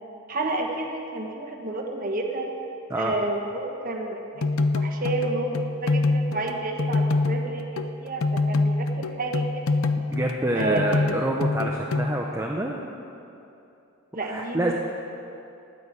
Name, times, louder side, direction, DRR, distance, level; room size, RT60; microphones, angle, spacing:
voice 1, 0.3-2.5 2.9-9.7 10.5-11.1 14.1-14.7, right 2 dB, 40° right, 1 dB, 1.4 m, -30 dB
sound 1, 4.4-7.9 8.2-12.2, left 3 dB, 70° left, 0.6 m, -25 dB
voice 2, 10.0-12.8 14.2-14.7, right 1 dB, 15° right, 0 dB, 0.7 m, -27 dB
11.0 x 9.7 x 8.2 m, 2.8 s
head